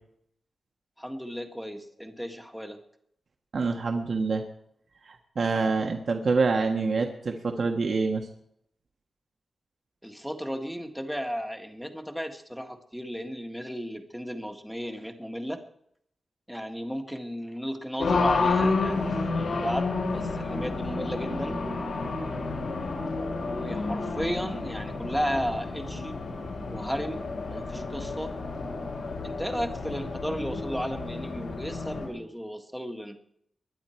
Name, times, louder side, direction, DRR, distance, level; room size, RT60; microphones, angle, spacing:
voice 1, 1.0-2.8 10.0-15.6 16.5-21.6 23.2-26.1 26.7-28.3 29.2-33.2, equal, ahead, 5 dB, 1.7 m, -34 dB
voice 2, 3.5-4.4 5.0-8.3, right 4 dB, 55° right, 3 dB, 1.5 m, -26 dB
Race car auto racing, 18.0-32.1, left 3 dB, 80° left, 6.4 m, -30 dB
21.0 x 11.0 x 4.5 m, 0.71 s
wide cardioid pair, 125°, 0 cm